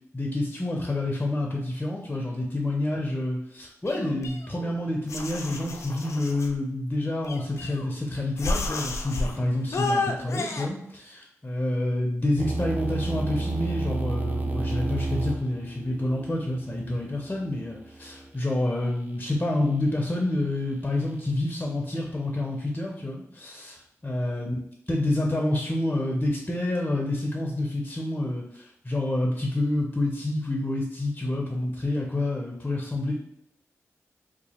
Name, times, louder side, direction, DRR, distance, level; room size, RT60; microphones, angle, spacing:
voice 1, 0.1-24.6 24.9-33.1, left 1 dB, 25° left, -1 dB, 0.6 m, -28 dB
sound 1, 3.9-4.7 5.1-6.5 7.2-8.0 8.4-9.4 9.7-10.7, left 3 dB, 65° left, 0.5 m, -31 dB
sound 2, 12.4-18.3, right 2 dB, 35° right, 0.6 m, -31 dB
2.8 x 2.4 x 4.2 m, 0.76 s
cardioid pair, 65°, 5 cm